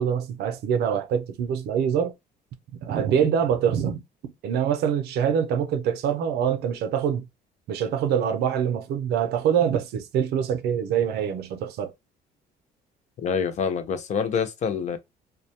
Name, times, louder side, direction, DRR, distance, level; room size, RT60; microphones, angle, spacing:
voice 1, 0.0-2.1 2.7-4.0 4.4-7.3 7.7-11.9, right 8 dB, 70° right, 0.5 m, -24 dB
voice 2, 13.2-15.0, left 6 dB, 45° left, 0.4 m, -26 dB
2.3 x 2.0 x 2.7 m
cardioid pair, 110°, 17 cm